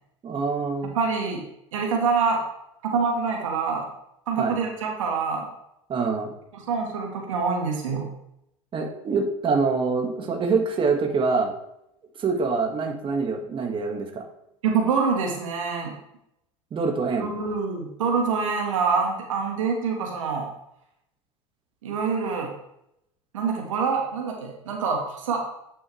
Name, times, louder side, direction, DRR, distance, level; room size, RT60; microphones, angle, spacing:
voice 1, 0.2-0.9 4.4-4.6 5.9-6.3 8.7-11.5 12.2-14.2 16.7-17.3, right 4 dB, 30° right, 3 dB, 1.7 m, -25 dB
voice 2, 0.9-1.4 1.7-2.4 2.8-3.9 4.3-5.4 6.5-8.1 14.6-15.9 17.2-20.5 21.8-22.5 23.3-25.4, right 5 dB, 80° right, 1 dB, 1.6 m, -25 dB
9.5 x 6.4 x 3.2 m, 0.79 s
hypercardioid pair, 85°, 16 cm